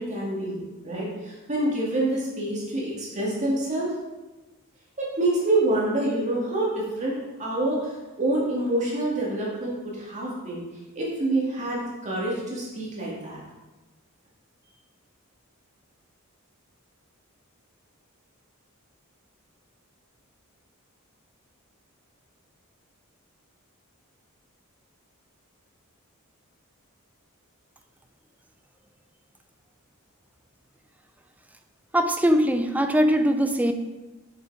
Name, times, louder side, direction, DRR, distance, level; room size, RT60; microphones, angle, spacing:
voice 1, 0.0-3.9 5.0-10.7 11.0-13.4, right 1 dB, 35° right, -4 dB, 2.3 m, -27 dB
voice 2, 31.9-33.7, equal, 5° right, 7 dB, 0.5 m, -21 dB
6.7 x 5.9 x 4.9 m, 1.1 s
head